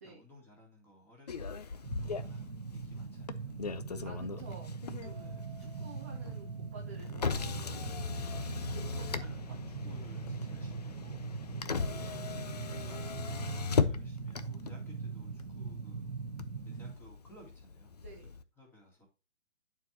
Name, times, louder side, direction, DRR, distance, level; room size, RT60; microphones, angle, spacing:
voice 1, 0.0-3.6 5.2-5.5 9.0-11.3 12.5-16.1 16.6-18.0 18.6-19.1, left 1 dB, 5° left, -2 dB, 2.1 m, -58 dB
Motor vehicle (road), 1.3-18.4, left 5 dB, 35° left, 0.5 m, -38 dB
sound 1, 1.8-17.0, right 5 dB, 80° right, 1.0 m, -41 dB
voice 2, 4.0-4.8 5.0-9.6 11.8-12.1 18.0-18.3, right 4 dB, 15° right, -1 dB, 0.5 m, -53 dB
sound 2, 5.0-8.6, right 8 dB, 60° right, 1.4 m, -59 dB
11.0 x 4.6 x 2.8 m, 0.32 s
figure-of-eight pair, 140°, 36 cm